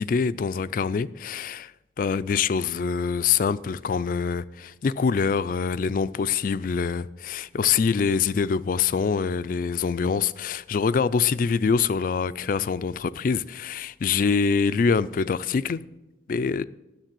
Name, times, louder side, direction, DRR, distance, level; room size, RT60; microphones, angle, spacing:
voice 1, 0.0-1.7 2.0-15.8 16.3-16.6, left 5 dB, 50° left, 0.3 m, -25 dB
11.5 x 6.7 x 7.5 m
head